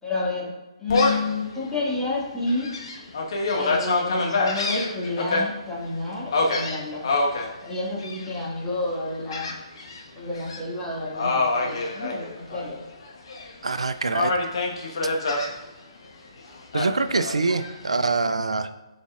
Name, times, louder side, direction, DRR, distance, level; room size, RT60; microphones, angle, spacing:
voice 1, 0.0-0.5 0.8-2.8 3.5-7.1 7.6-9.5 10.1-12.8, left 2 dB, 10° left, -6 dB, 1.9 m, -30 dB
Gull seagull, 0.9-1.3 1.8-1.9 2.5-5.4 6.3-7.5 8.0-8.4 9.3-10.0 10.3-10.6 11.1-12.7 13.0-13.8 14.1-15.5 16.7-17.7, left 3 dB, 55° left, 1.3 m, -25 dB
voice 2, 13.6-14.3 16.7-18.7, right 3 dB, 80° right, 11 dB, 0.4 m, -24 dB
12.0 x 4.2 x 2.4 m, 1.1 s
figure-of-eight pair, 140°, 3 cm